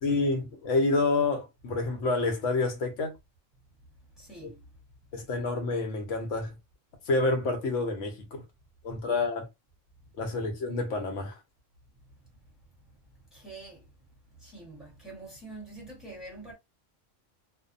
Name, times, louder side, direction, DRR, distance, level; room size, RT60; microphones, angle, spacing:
voice 1, 0.0-3.1 5.1-6.5 7.1-8.4 8.8-9.5 10.2-11.3, left 3 dB, 75° left, 1.0 m, -28 dB
voice 2, 4.2-4.5 8.9-9.0 13.3-13.8 14.4-16.5, right 2 dB, ahead, 1.1 m, -45 dB
2.6 x 2.1 x 2.5 m
omnidirectional pair, 1.3 m